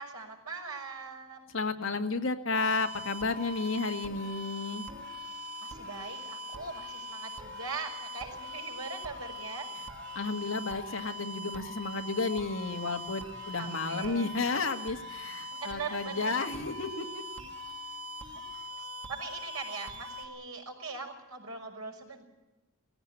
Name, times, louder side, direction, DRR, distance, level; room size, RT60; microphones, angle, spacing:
voice 1, 0.0-1.5 5.6-9.7 13.5-14.3 15.5-16.4 18.3-18.4 18.8-22.2, right 4 dB, 85° right, 2 dB, 5.9 m, -41 dB
voice 2, 1.5-4.8 10.2-17.2, left 3 dB, 60° left, 5 dB, 1.9 m, -32 dB
sound 1, 2.5-20.2, left 1 dB, 55° right, 2.8 m, -42 dB
19.0 x 16.0 x 10.0 m, 1.1 s
head